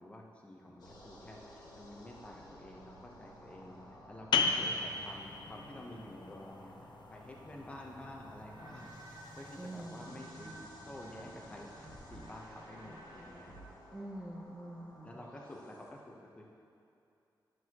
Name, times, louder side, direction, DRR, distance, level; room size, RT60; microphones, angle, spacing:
voice 1, 0.0-3.8 4.1-6.7 7.1-8.9 9.4-11.7 12.1-13.6 15.0-16.5, left 1 dB, 15° left, -1 dB, 0.8 m, -50 dB
sound 1, 0.8-15.9, equal, 60° left, 1.4 m, -54 dB
sound 2, 4.3-9.7, left 5 dB, 80° left, 0.5 m, -37 dB
sound 3, 8.5-13.7, right 2 dB, 80° right, 1.6 m, -54 dB
voice 2, 9.6-10.3 13.9-15.3, right 1 dB, 15° right, -2 dB, 0.7 m, -46 dB
11.5 x 6.2 x 3.0 m, 2.6 s
wide cardioid pair, 175°, 8 cm